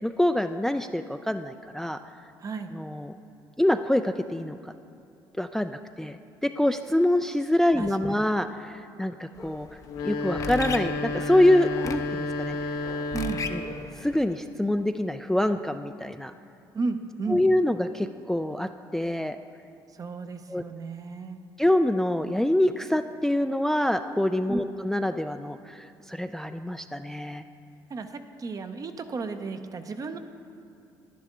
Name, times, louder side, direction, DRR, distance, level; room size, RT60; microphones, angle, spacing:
voice 1, 0.0-2.0 2.7-3.1 3.6-4.7 5.4-9.7 10.0-12.6 13.5-13.6 14.0-16.3 17.3-19.4 20.5-20.6 21.6-27.4, left 1 dB, 5° left, 8 dB, 0.3 m, -25 dB
voice 2, 2.4-2.7 7.8-8.3 13.1-13.4 16.7-17.4 19.9-21.4 24.5-24.7 27.9-30.2, right 4 dB, 40° right, 8 dB, 0.7 m, -34 dB
sound 1, 9.3-14.3, left 5 dB, 35° left, 0.7 m, -38 dB
sound 2, 9.8-13.9, left 2 dB, 85° left, 0.8 m, -31 dB
10.5 x 10.0 x 3.7 m, 2.6 s
supercardioid pair, 75°, 9 cm